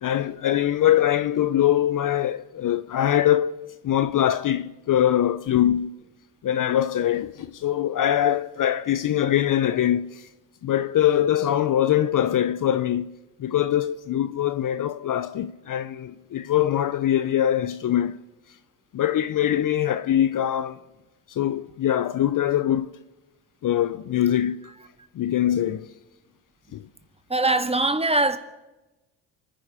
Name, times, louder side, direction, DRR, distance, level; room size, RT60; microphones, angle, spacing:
voice 1, 0.0-3.5 3.8-5.9 6.4-10.3 10.6-18.2 18.9-20.8 21.3-22.9 23.6-24.7 25.1-25.9 26.7-26.9, left 11 dB, 45° left, 0.7 m, -23 dB
voice 2, 27.3-28.4, right 2 dB, 15° right, 1.8 m, -21 dB
28.0 x 10.5 x 5.0 m
supercardioid pair, 65°, 47 cm